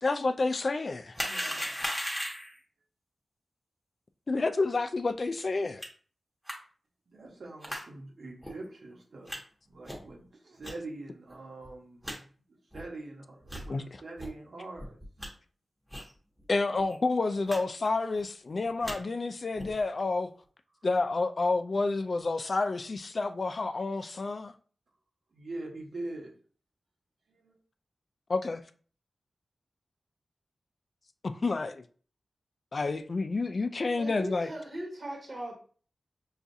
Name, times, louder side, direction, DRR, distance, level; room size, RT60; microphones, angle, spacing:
voice 1, 0.0-1.2 4.3-5.8 13.7-14.0 16.5-20.3 20.8-24.5 28.3-28.6 31.2-31.8 32.7-34.5, left 3 dB, 50° left, 0.3 m, -29 dB
sound 1, 1.1-2.6 5.8-5.9 6.5-6.6 7.6-7.8 8.4-8.5 9.3-9.4 9.9-10.1 10.6-10.7 11.3-11.4 11.6-11.7 12.0-12.2 12.7-12.8 13.4-13.7 14.2-14.3 14.8-15.3 15.9-16.1 16.4-16.5 16.8-17.0 17.5-17.6 17.8-18.2 18.6-19.0 19.5-19.8, equal, ahead, 1.1 m, -36 dB
voice 2, 1.2-1.7 7.2-9.3 9.7-10.2 10.6-12.0 12.7-13.2 13.6-14.8 25.4-26.3, right 2 dB, 75° right, 1.1 m, -42 dB
voice 3, 34.0-35.5, right 1 dB, 45° right, 1.1 m, -38 dB
5.7 x 2.4 x 2.7 m
wide cardioid pair, 85°, 0 cm